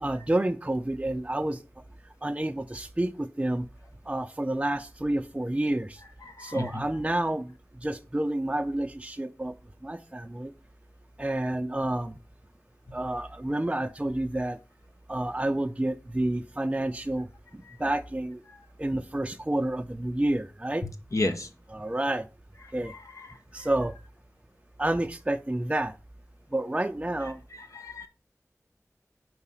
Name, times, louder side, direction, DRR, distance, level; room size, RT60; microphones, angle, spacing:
voice 1, 0.0-1.6 2.2-3.6 4.1-6.0 6.4-7.5 7.8-9.5 9.8-10.5 11.2-12.1 12.9-14.6 15.1-17.3 17.8-18.4 18.8-20.8 21.7-22.2 22.7-22.9 23.5-23.9 24.8-25.9 26.5-27.4, right 1 dB, 20° right, 0.5 m, -29 dB
voice 2, 6.2-6.8 17.6-17.8 21.1-21.5 22.9-23.7 27.5-28.1, left 2 dB, 65° left, 0.8 m, -33 dB
4.8 x 4.7 x 5.5 m
wide cardioid pair, 40°, 6 cm